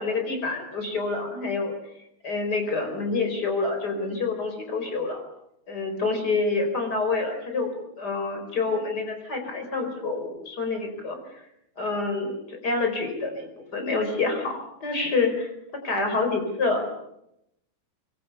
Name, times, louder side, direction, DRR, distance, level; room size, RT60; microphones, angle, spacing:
voice 1, 0.0-1.7 2.2-5.2 5.7-11.2 11.8-13.5 13.7-16.9, left 3 dB, 20° left, 5 dB, 4.8 m, -27 dB
25.0 x 23.0 x 7.0 m, 0.80 s
omnidirectional pair, 5.7 m